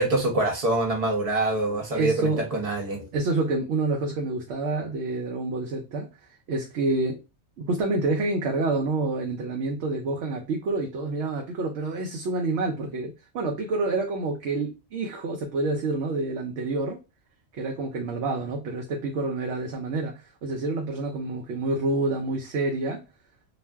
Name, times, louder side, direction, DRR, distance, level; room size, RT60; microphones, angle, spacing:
voice 1, 0.0-3.1, right 2 dB, 35° right, 0.8 m, -25 dB
voice 2, 1.9-2.5 3.1-6.1 6.5-7.2 7.6-17.0 17.5-23.0, right 3 dB, 80° right, 0.9 m, -28 dB
2.4 x 2.1 x 3.3 m
omnidirectional pair, 1.1 m